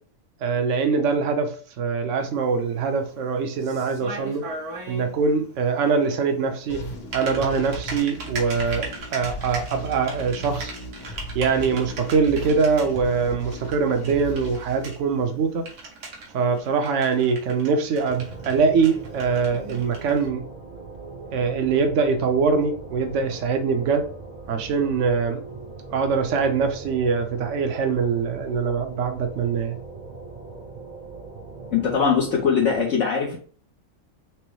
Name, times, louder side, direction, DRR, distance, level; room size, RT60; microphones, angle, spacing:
voice 1, 0.4-4.4 4.9-6.8 7.1-10.7 11.3-15.6 16.3-20.4 21.3-24.1 24.5-25.4 25.9-29.8, right 5 dB, 60° right, 1.0 m, -23 dB
Typing, 2.2-20.3, right 3 dB, 85° right, 1.5 m, -40 dB
sound 1, 6.7-15.6, right 1 dB, 85° left, 1.7 m, -36 dB
sound 2, 18.0-32.8, right 3 dB, 40° right, 0.7 m, -40 dB
voice 2, 31.7-33.4, left 6 dB, 60° left, 0.9 m, -21 dB
6.0 x 2.1 x 3.1 m
omnidirectional pair, 1.6 m